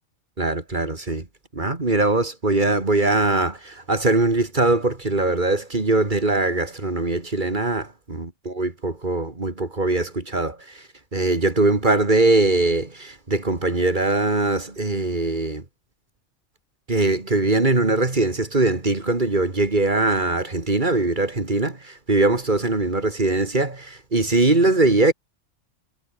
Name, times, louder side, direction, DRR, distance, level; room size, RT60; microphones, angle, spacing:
voice 1, 0.4-1.3 1.5-15.6 16.9-25.1, right 2 dB, 40° right, 2.7 m, -21 dB
omnidirectional pair, 1.3 m